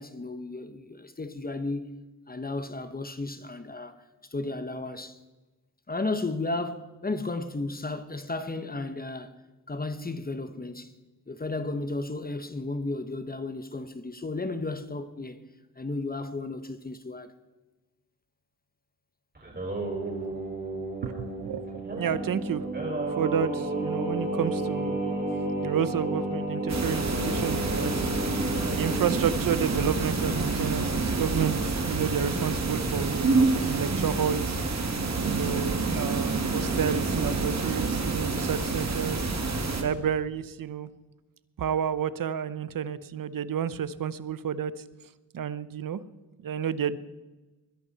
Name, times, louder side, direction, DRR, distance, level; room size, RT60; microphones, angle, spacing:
voice 1, 0.0-2.0 2.3-3.9 4.3-5.2 5.9-9.3 9.7-10.9 11.3-15.4 15.8-17.3, left 2 dB, 25° left, 1.1 m, -33 dB
Singing, 19.3-29.1, right 1 dB, 25° right, 5.8 m, -31 dB
voice 2, 21.0-21.6 21.9-22.7 23.1-25.0 25.6-28.0 28.4-34.9 35.2-39.3 39.8-40.9 41.6-44.8 45.3-46.0 46.4-47.0, right 8 dB, 60° right, 0.8 m, -30 dB
sound 1, 26.7-39.8, right 3 dB, 45° right, 2.3 m, -28 dB
21.0 x 11.0 x 4.2 m
cardioid pair, 80°, 38 cm